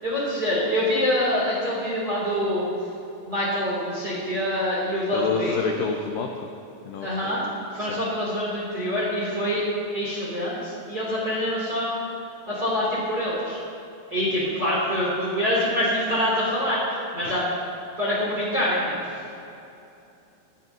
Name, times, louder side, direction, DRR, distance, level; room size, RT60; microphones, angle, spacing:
voice 1, 0.0-2.6 3.2-5.5 7.0-7.4 7.7-9.6 9.9-12.0 12.5-13.6 14.1-16.8 17.1-17.4 18.0-19.0, equal, 25° right, -8 dB, 3.5 m, -25 dB
voice 2, 5.1-6.5 6.9-7.4 7.8-8.0 17.3-17.4, left 5 dB, 85° left, 2 dB, 1.9 m, -29 dB
28.0 x 10.5 x 3.1 m, 2.8 s
omnidirectional pair, 5.0 m